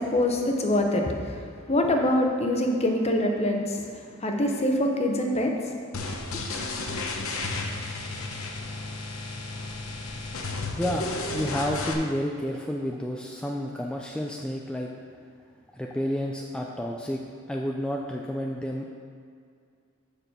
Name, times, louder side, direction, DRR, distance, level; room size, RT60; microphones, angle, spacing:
voice 1, 0.0-5.8 6.2-6.4, left 1 dB, 30° left, 2 dB, 0.9 m, -25 dB
sound 1, 5.9-11.9, left 3 dB, 85° left, 0.9 m, -33 dB
voice 2, 10.8-11.1 11.3-14.9 15.7-17.2 17.5-18.9, equal, 5° left, -1 dB, 0.4 m, -30 dB
7.0 x 5.8 x 6.7 m, 2.3 s
head